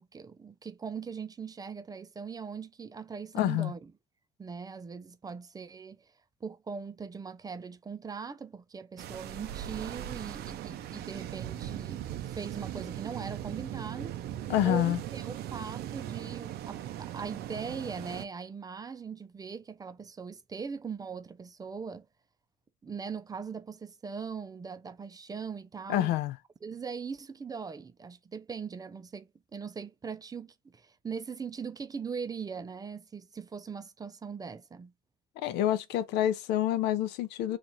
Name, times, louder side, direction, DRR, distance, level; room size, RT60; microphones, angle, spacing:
voice 1, 0.0-3.9 4.4-6.1 6.4-14.2 14.6-22.1 22.8-26.1 26.6-34.9, right 6 dB, 20° right, 0.4 m, -40 dB
voice 2, 3.3-3.7 14.5-15.0 25.9-26.4 35.4-37.6, left 12 dB, 85° left, 0.5 m, -27 dB
sound 1, 9.0-18.2, right 11 dB, 70° right, 0.5 m, -39 dB
3.0 x 2.4 x 3.9 m
cardioid pair, 110°, 17 cm